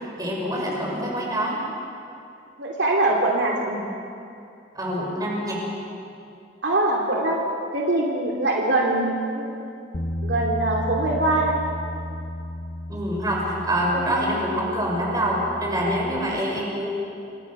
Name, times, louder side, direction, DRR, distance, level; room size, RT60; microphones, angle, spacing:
voice 1, 0.2-1.6 4.7-5.6 12.9-16.9, equal, 20° right, -2 dB, 6.6 m, -25 dB
voice 2, 2.6-3.8 6.6-7.4 7.7-9.8 10.2-11.5, right 2 dB, 65° right, -1 dB, 3.0 m, -23 dB
Bass guitar, 9.9-16.2, left 1 dB, 40° left, 1.4 m, -33 dB
29.0 x 24.5 x 6.2 m, 2.6 s
head